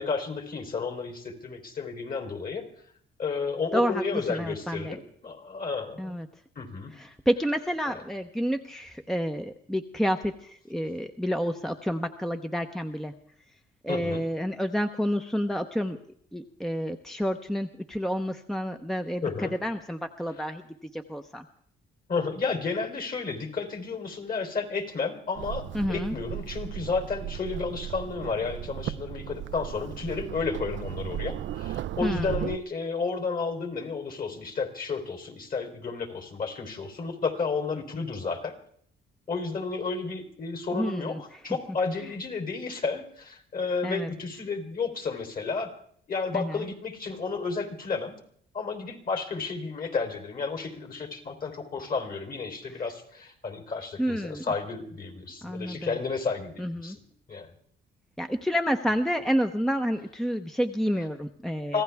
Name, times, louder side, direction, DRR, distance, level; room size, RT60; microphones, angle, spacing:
voice 1, 0.0-2.7 3.2-6.1 6.6-6.9 7.9-8.0 13.9-14.2 19.2-19.5 22.1-38.5 39.3-45.7 46.1-48.2 48.5-57.0 57.3-57.5 61.7-61.8, left 4 dB, 45° left, 5 dB, 3.8 m, -32 dB
voice 2, 3.7-5.0 6.0-6.3 6.9-13.1 13.8-16.0 16.3-20.6 20.9-21.4 25.7-26.1 32.0-32.5 40.7-41.6 43.8-44.1 46.3-46.7 52.7-52.8 54.0-54.4 55.4-56.0 56.6-57.0 58.2-61.8, equal, ahead, 6 dB, 0.9 m, -29 dB
sound 1, 25.4-32.6, right 12 dB, 70° right, 0.5 m, -36 dB
25.5 x 16.0 x 3.5 m, 0.62 s
cardioid pair, 90°, 20 cm